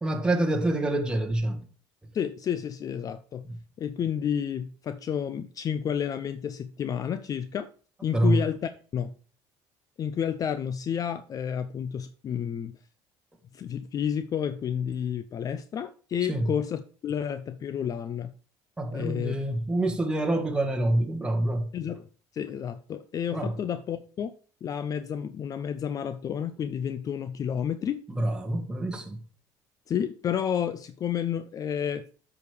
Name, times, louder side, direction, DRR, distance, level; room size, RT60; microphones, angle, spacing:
voice 1, 0.0-1.6 3.5-3.6 8.1-8.4 16.3-16.5 18.8-21.7 23.3-23.6 28.1-29.2, right 1 dB, 10° right, 1.4 m, -26 dB
voice 2, 2.1-3.5 3.8-7.7 8.0-9.2 10.0-12.7 13.5-18.3 18.9-19.4 21.7-22.0 22.3-24.3 24.6-28.0 29.9-32.1, left 8 dB, 40° left, 0.5 m, -30 dB
8.2 x 4.9 x 5.0 m
cardioid pair, 110°, 9 cm